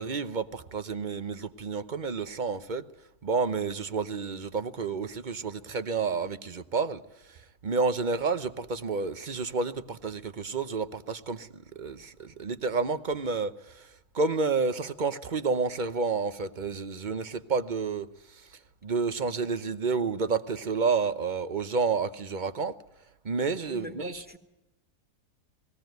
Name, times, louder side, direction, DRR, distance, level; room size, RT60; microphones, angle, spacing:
voice 1, 0.0-2.8 3.2-7.0 7.3-13.9 14.1-18.1 18.3-18.4 18.8-22.7 23.2-24.2, right 4 dB, 40° right, 0.8 m, -30 dB
voice 2, 23.7-24.4, equal, 5° right, 2.0 m, -40 dB
20.5 x 16.5 x 9.2 m
omnidirectional pair, 1.7 m